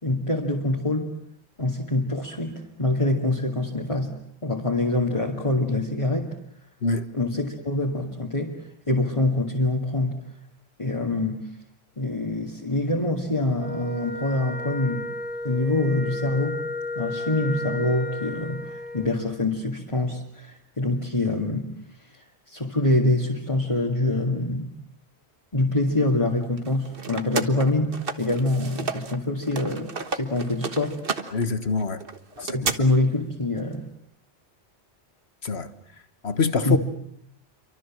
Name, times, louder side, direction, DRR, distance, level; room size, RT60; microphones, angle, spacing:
voice 1, 0.0-1.1 1.6-4.1 4.4-6.4 7.1-8.6 8.9-10.2 10.8-11.5 12.0-15.0 15.4-16.6 17.0-21.7 22.5-24.7 25.5-31.0 32.5-33.8 36.6-36.8, left 2 dB, 30° left, 2.6 m, -25 dB
Wind instrument woodwind instrument, 13.5-19.2, left 1 dB, 10° left, 2.6 m, -33 dB
sound 1, 26.6-29.2 29.4-32.7, right 4 dB, 55° right, 1.5 m, -32 dB
voice 2, 31.3-32.0 32.4-32.7 35.4-35.7 36.2-36.8, left 4 dB, 70° left, 1.7 m, -25 dB
28.5 x 24.5 x 7.5 m
omnidirectional pair, 1.1 m